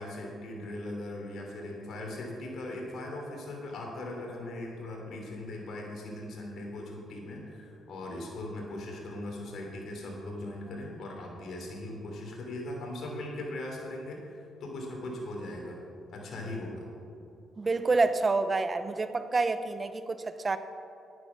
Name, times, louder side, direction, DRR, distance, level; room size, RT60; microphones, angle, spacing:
voice 1, 0.0-15.8 16.1-16.9, left 1 dB, 65° left, 0 dB, 3.0 m, -39 dB
voice 2, 17.6-20.6, right 3 dB, 30° right, 11 dB, 0.7 m, -28 dB
10.5 x 9.6 x 6.0 m, 2.7 s
cardioid pair, 90°, 0 cm